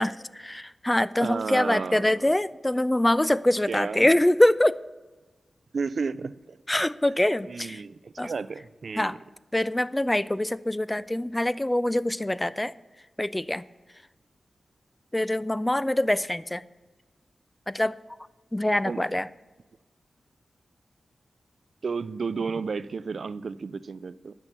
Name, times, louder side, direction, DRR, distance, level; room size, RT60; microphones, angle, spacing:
voice 1, 0.0-4.8 6.7-7.8 8.2-8.3 9.0-9.2 9.5-12.7 13.2-13.6 15.1-16.6 17.7-17.9 18.5-19.3, left 1 dB, 15° left, 0.3 m, -24 dB
voice 2, 1.2-2.3 3.7-4.1 5.7-6.6 7.4-9.2 18.8-19.0 21.8-24.3, right 5 dB, 65° right, 0.4 m, -32 dB
10.5 x 6.1 x 6.7 m
cardioid pair, 70°, 0 cm